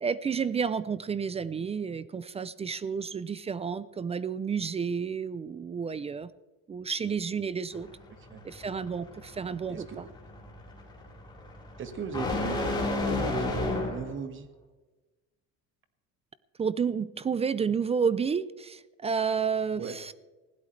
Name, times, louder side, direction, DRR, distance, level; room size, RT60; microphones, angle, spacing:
voice 1, 0.0-6.3 6.7-7.9 8.4-10.1 16.6-20.1, right 6 dB, 20° right, 17 dB, 0.4 m, -31 dB
sound 1, 7.7-14.2, left 2 dB, 15° left, 4.3 m, -33 dB
voice 2, 9.7-10.0 11.8-14.5 19.8-19.9, right 6 dB, 35° right, 9 dB, 1.6 m, -38 dB
20.0 x 16.0 x 3.2 m, 1.2 s
cardioid pair, 145°, 33 cm